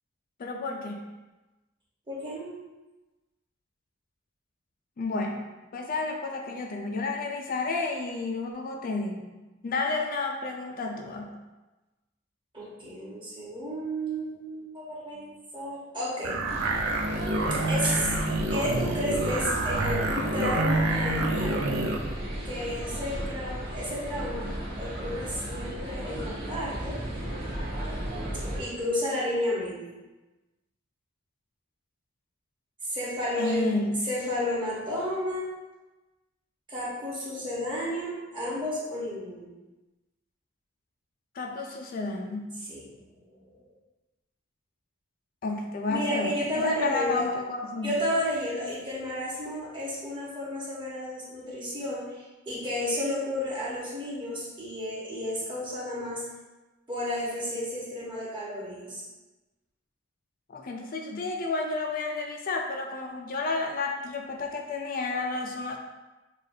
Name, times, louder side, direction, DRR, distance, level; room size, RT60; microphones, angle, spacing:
voice 1, 0.4-1.1 5.0-5.4 5.7-9.3 9.6-11.4 33.4-34.0 41.3-42.5 45.4-48.0 60.5-65.8, left 3 dB, 45° left, 2 dB, 0.4 m, -31 dB
voice 2, 2.1-2.5 12.5-16.3 17.7-18.1 18.5-21.6 22.4-24.5 24.8-27.0 28.4-29.9 32.8-33.7 34.0-35.5 36.7-39.5 42.7-42.8 43.5-43.6 45.9-47.3 47.8-56.2 56.9-59.0, left 1 dB, 25° right, -7 dB, 1.3 m, -32 dB
sound 1, 16.2-22.0, right 2 dB, 85° right, 0.5 m, -27 dB
sound 2, 16.4-28.6, right 1 dB, 55° right, 1.5 m, -35 dB
6.4 x 2.4 x 2.7 m, 1.1 s
head